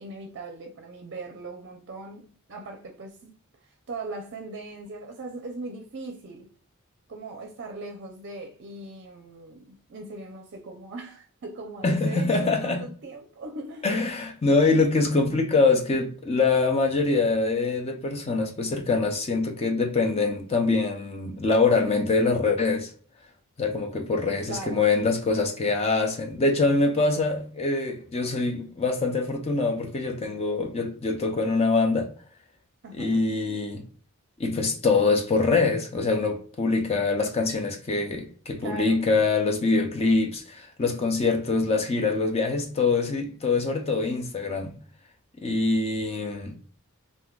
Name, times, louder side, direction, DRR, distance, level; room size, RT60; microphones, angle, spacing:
voice 1, 0.0-3.3 3.7-6.5 7.1-13.9 24.5-24.9 32.8-33.3 38.6-39.0, right 2 dB, 50° right, 0.5 m, -39 dB
voice 2, 11.8-12.8 13.8-22.9 23.6-32.1 33.0-33.9 34.4-44.8 45.4-46.6, left 3 dB, 25° left, 0.5 m, -24 dB
3.5 x 2.6 x 2.3 m
head